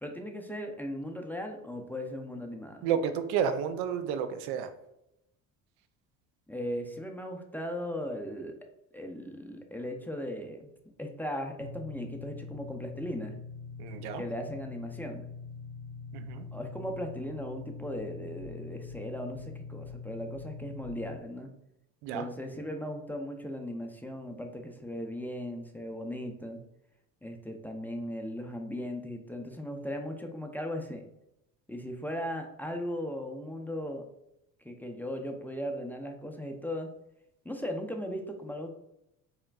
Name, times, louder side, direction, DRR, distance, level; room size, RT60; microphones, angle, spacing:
voice 1, 0.0-2.9 6.5-8.6 8.9-10.7 11.0-13.4 14.1-15.3 16.5-21.5 22.1-26.6 27.2-31.1 31.7-34.0 34.6-36.9 37.4-38.7, equal, 5° left, 3 dB, 0.6 m, -37 dB
voice 2, 2.8-4.7 13.8-14.2 16.1-16.5 22.0-22.2, right 7 dB, 75° right, 10 dB, 0.5 m, -31 dB
sound 1, 11.6-21.2, left 5 dB, 60° left, 0.9 m, -43 dB
4.3 x 3.5 x 2.3 m, 0.83 s
supercardioid pair, 70°, 39 cm